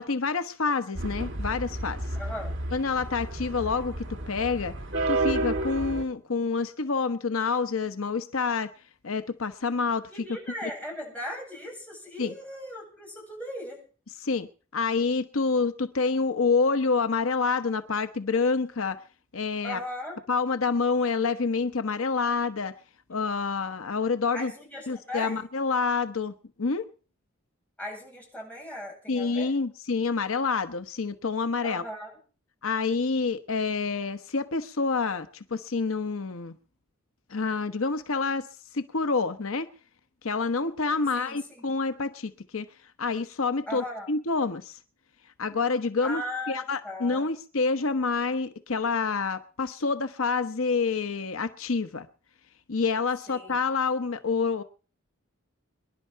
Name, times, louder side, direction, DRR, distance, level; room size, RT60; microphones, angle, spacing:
voice 1, 0.0-2.0 2.7-4.0 4.3-4.7 5.1-8.7 9.0-10.1 10.6-10.7 12.2-12.3 14.2-14.5 14.7-19.0 19.3-19.8 20.3-22.7 23.1-24.5 24.9-26.9 29.1-31.8 32.6-36.5 37.3-38.5 38.7-39.7 40.2-42.7 43.0-44.8 45.4-46.2 46.5-52.1 52.7-54.6, left 4 dB, 80° left, 10 dB, 0.9 m, -27 dB
sound 1, 0.9-6.0, right 2 dB, 60° right, 2.0 m, -31 dB
voice 2, 2.1-2.6 10.1-13.8 19.6-20.2 24.3-25.4 27.8-29.5 31.6-32.1 41.1-41.6 43.7-44.1 46.0-47.3 53.3-53.6, left 1 dB, 5° left, -2 dB, 8.0 m, -38 dB
25.0 x 11.0 x 4.6 m, 0.38 s
head